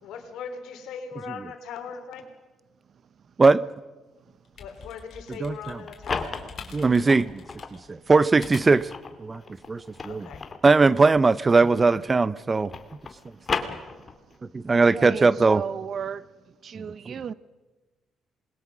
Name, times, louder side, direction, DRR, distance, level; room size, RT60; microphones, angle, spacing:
voice 1, 0.0-2.2 4.6-6.4 10.0-10.4, left 6 dB, 85° left, 3.2 m, -39 dB
sound 1, 4.3-9.0, left 5 dB, 55° left, 4.0 m, -46 dB
voice 2, 5.4-5.8 6.7-7.4 7.9-8.9 9.2-9.4 9.7-10.3 10.6-12.7 14.5-15.6 16.8-17.1, right 3 dB, 30° right, 0.8 m, -20 dB
sound 2, 5.6-7.8 8.3-12.1 12.4-14.4, left 4 dB, 35° left, 2.3 m, -35 dB
voice 3, 14.7-16.2 16.6-17.3, right 7 dB, 55° right, 0.9 m, -35 dB
27.0 x 21.0 x 6.2 m
cardioid pair, 90°, 0 cm